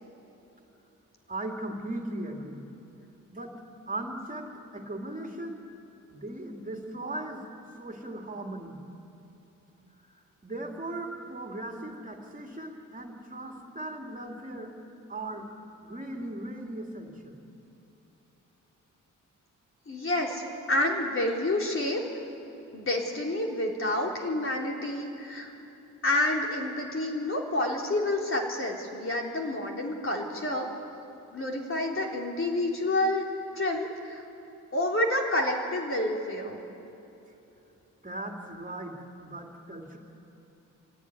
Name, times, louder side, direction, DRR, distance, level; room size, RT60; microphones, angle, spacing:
voice 1, 1.3-2.6 3.3-3.6 3.9-5.6 6.1-7.4 7.7-8.8 10.4-14.7 15.1-15.5 15.8-17.4 38.0-40.0, right 1 dB, 25° right, 2 dB, 2.9 m, -38 dB
voice 2, 19.9-22.0 22.7-25.5 26.0-30.7 31.3-33.3 33.5-34.2 34.7-36.6, left 1 dB, 40° left, 0 dB, 3.8 m, -29 dB
24.0 x 17.0 x 9.8 m, 3.0 s
cardioid pair, 80°, 32 cm